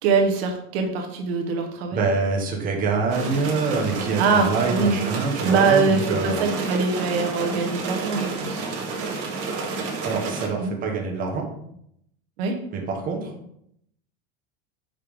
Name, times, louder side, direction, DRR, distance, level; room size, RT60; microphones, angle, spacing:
voice 1, 0.0-2.0 4.2-5.0 5.4-8.6 10.6-10.7 12.4-12.6, right 4 dB, 65° right, 4 dB, 1.1 m, -23 dB
voice 2, 1.9-6.5 10.0-11.5 12.7-13.3, right 4 dB, 25° right, 0 dB, 1.1 m, -25 dB
sound 1, 3.1-10.5, right 4 dB, 45° right, 1.5 m, -30 dB
5.6 x 5.2 x 3.4 m, 0.74 s
supercardioid pair, 150°, 33 cm